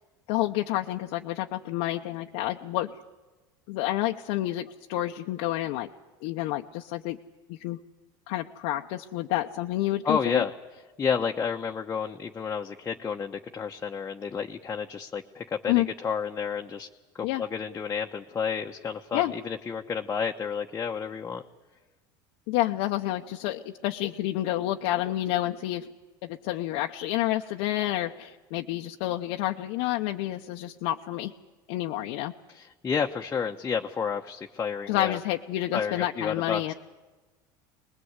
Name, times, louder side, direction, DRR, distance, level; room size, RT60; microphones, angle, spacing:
voice 1, 0.3-3.0 3.7-5.9 6.2-7.2 7.5-7.8 8.3-10.4 15.7-15.9 17.2-17.5 19.1-19.3 22.5-25.9 26.2-31.3 31.7-32.3 34.9-36.7, left 15 dB, 70° left, 2 dB, 0.9 m, -29 dB
voice 2, 10.0-10.5 11.0-16.9 17.1-21.4 32.5-35.2 35.7-36.7, left 6 dB, 25° left, 1 dB, 1.0 m, -30 dB
24.0 x 20.5 x 8.1 m, 1.2 s
supercardioid pair, 115°, 11 cm